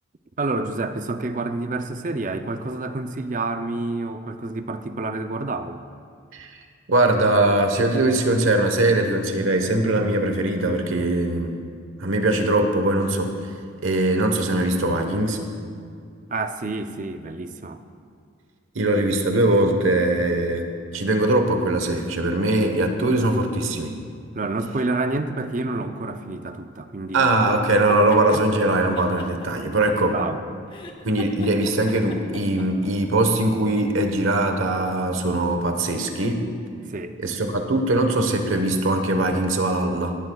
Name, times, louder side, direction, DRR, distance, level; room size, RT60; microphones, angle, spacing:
voice 1, 0.4-5.8 16.3-17.8 24.3-27.3 28.1-28.4 30.1-30.4 36.9-37.7, right 2 dB, 40° right, 8 dB, 0.5 m, -29 dB
voice 2, 6.9-11.6 12.0-13.3 13.8-15.4 18.7-24.0 27.1-30.1 31.0-36.5 37.2-40.2, right 2 dB, 90° right, 5 dB, 1.2 m, -21 dB
sound 1, 27.7-28.4 29.0-30.3 30.7-32.9, left 2 dB, 25° left, 0.8 m, -38 dB
17.5 x 12.5 x 2.3 m, 2.3 s
head